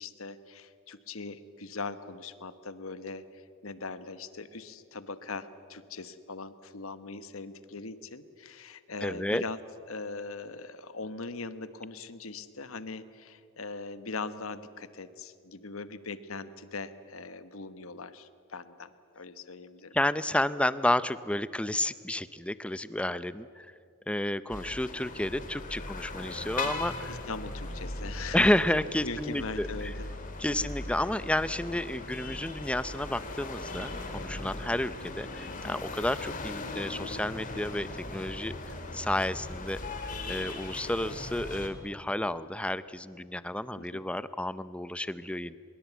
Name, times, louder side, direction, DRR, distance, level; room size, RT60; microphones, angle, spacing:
voice 1, 0.0-9.6 9.9-19.9 26.6-26.8 27.1-28.6 29.0-30.1 30.4-30.7 34.5-34.6 43.8-44.0, left 3 dB, 70° left, 12 dB, 1.2 m, -41 dB
voice 2, 9.0-9.4 19.9-23.7 24.1-27.1 28.3-29.9 30.4-39.8 40.3-45.6, left 1 dB, 5° left, 15 dB, 0.5 m, -31 dB
sound 1, 24.5-41.7, left 2 dB, 40° left, 2.5 m, -39 dB
23.5 x 22.0 x 8.2 m, 2.3 s
head